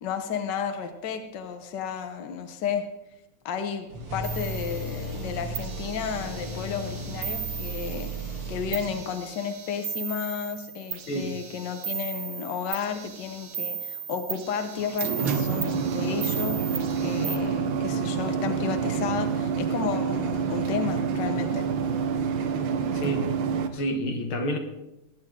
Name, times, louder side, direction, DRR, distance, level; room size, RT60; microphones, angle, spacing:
voice 1, 0.0-2.8 3.4-8.1 8.5-21.7, left 7 dB, 60° left, 6 dB, 1.5 m, -32 dB
sound 1, 3.9-9.4, right 1 dB, 90° right, 3.5 m, -35 dB
sound 2, 4.2-5.1 5.6-8.4 8.7-17.4, right 8 dB, 55° right, 1.4 m, -37 dB
sound 3, 14.8-23.7, right 6 dB, 70° right, 1.6 m, -27 dB
voice 2, 22.9-23.3 23.7-24.6, equal, 85° left, 5 dB, 2.2 m, -29 dB
20.0 x 9.5 x 3.7 m, 0.95 s
omnidirectional pair, 2.3 m